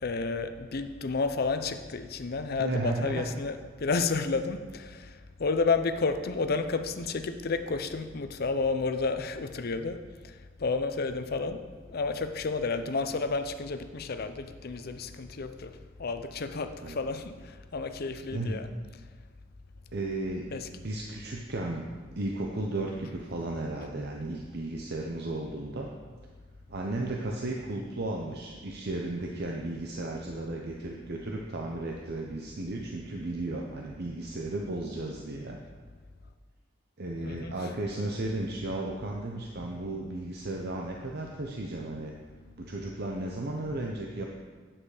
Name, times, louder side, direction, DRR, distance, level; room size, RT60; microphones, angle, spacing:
voice 1, 0.0-11.6 11.9-18.7 20.5-20.7 37.2-37.5, left 4 dB, 50° left, 9 dB, 0.6 m, -31 dB
voice 2, 2.6-3.3 16.8-17.0 18.3-18.6 19.9-21.9 22.2-25.9 26.7-35.6 37.0-42.1 42.6-44.3, right 2 dB, 55° right, 0 dB, 0.8 m, -34 dB
9.0 x 7.4 x 4.9 m, 1.5 s
head